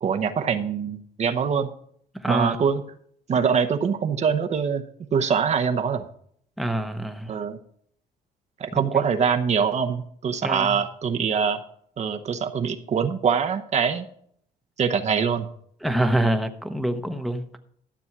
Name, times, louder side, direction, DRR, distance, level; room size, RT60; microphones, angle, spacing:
voice 1, 0.0-1.7 2.3-2.8 3.3-4.8 5.1-6.1 7.3-7.6 8.6-11.6 12.0-14.1 14.8-15.5, right 6 dB, 40° right, 0.9 m, -23 dB
voice 2, 2.2-2.6 6.6-7.3 10.4-10.7 15.8-17.6, right 1 dB, ahead, 1.0 m, -25 dB
12.5 x 7.0 x 6.0 m
cardioid pair, 110°, 17 cm